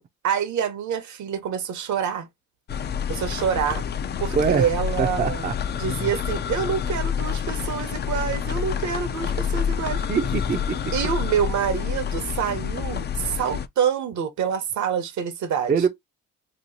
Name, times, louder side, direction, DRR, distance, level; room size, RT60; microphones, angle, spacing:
voice 1, 0.2-2.3 3.1-3.8 4.2-5.5 5.8-10.0 10.9-15.7, right 8 dB, 70° right, 1.0 m, -26 dB
sound 1, 2.7-13.7, left 7 dB, 35° left, 0.4 m, -28 dB
voice 2, 4.3-4.7 5.0-5.5 10.1-10.9 15.7-15.9, right 6 dB, 30° right, 0.5 m, -23 dB
3.0 x 2.7 x 2.6 m
cardioid pair, 90°, 30 cm